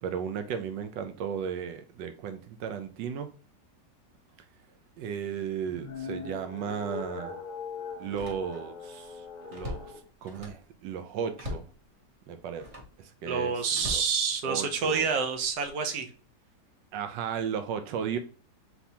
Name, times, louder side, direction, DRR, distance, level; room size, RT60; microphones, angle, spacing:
voice 1, 0.0-3.3 5.0-7.4 8.0-9.3 9.5-11.7 12.3-12.7 13.0-14.0 14.4-15.1 16.9-18.2, right 7 dB, 90° right, 1.3 m, -35 dB
sound 1, 5.6-10.0, left 5 dB, 60° left, 0.4 m, -41 dB
Slam, 5.9-6.1 6.6-6.7 8.0-8.8 9.2-10.7 11.3-11.8 12.5-13.0 13.7-14.8 15.4-15.7, left 2 dB, 25° right, 0.8 m, -41 dB
voice 2, 13.3-16.1, right 5 dB, 70° right, 1.3 m, -28 dB
4.2 x 3.4 x 2.8 m
omnidirectional pair, 1.9 m